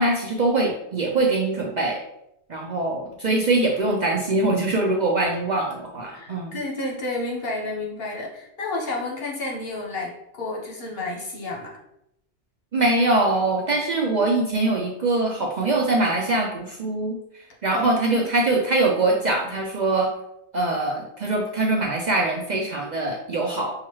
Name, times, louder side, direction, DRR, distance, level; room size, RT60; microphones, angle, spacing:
voice 1, 0.0-2.0 2.5-6.5 12.7-17.2 17.6-20.1 20.5-23.8, right 2 dB, 55° right, 0 dB, 0.5 m, -23 dB
voice 2, 6.1-11.7 17.7-18.3, left 2 dB, 60° left, -1 dB, 1.2 m, -31 dB
6.0 x 2.3 x 3.0 m, 0.80 s
omnidirectional pair, 1.2 m